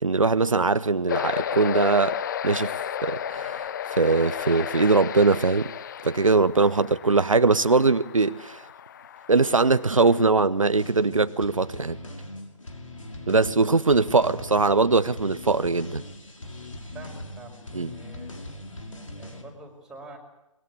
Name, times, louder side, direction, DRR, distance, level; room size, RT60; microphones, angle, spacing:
voice 1, 0.0-2.7 3.0-5.7 6.0-8.6 9.3-12.0 13.3-16.0 17.7-17.9, right 3 dB, 75° right, 1.1 m, -21 dB
sound 1, 1.1-10.3, left 9 dB, 35° left, 0.8 m, -33 dB
sound 2, 10.7-19.4, left 1 dB, 75° left, 5.5 m, -40 dB
voice 2, 16.9-18.3 19.1-20.2, right 2 dB, 5° right, 5.0 m, -45 dB
24.0 x 22.0 x 8.2 m
figure-of-eight pair, 135°, 17 cm